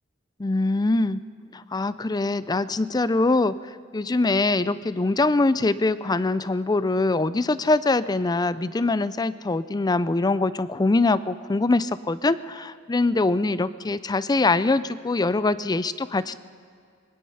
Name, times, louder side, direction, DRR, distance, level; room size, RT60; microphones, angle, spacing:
voice 1, 0.4-1.2 1.7-3.5 3.9-16.4, left 2 dB, 20° left, 16 dB, 0.4 m, -23 dB
25.0 x 20.5 x 5.6 m, 2.2 s
head